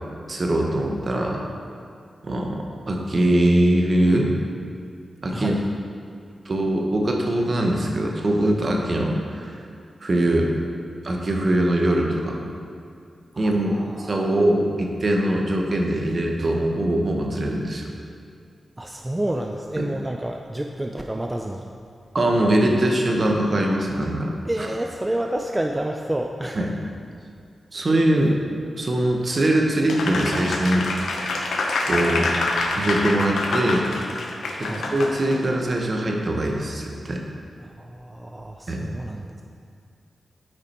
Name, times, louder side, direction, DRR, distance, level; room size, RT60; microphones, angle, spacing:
voice 1, 0.3-1.4 2.2-4.3 5.2-5.6 6.4-9.6 10.0-10.5 11.0-12.4 13.4-17.8 19.8-19.9 22.1-24.7 26.5-26.7 27.7-28.3 28.7-30.9 31.9-32.3 32.7-33.9 34.6-37.2 38.7-38.8, right 1 dB, 50° right, 1 dB, 1.2 m, -22 dB
voice 2, 13.3-14.4 18.8-21.7 24.4-26.7 34.5-34.9 37.6-39.4, right 1 dB, 20° right, 2 dB, 0.5 m, -29 dB
Applause, 29.9-35.5, left 2 dB, 80° left, 0.8 m, -26 dB
8.9 x 4.8 x 4.4 m, 2.4 s
cardioid pair, 50°, 0 cm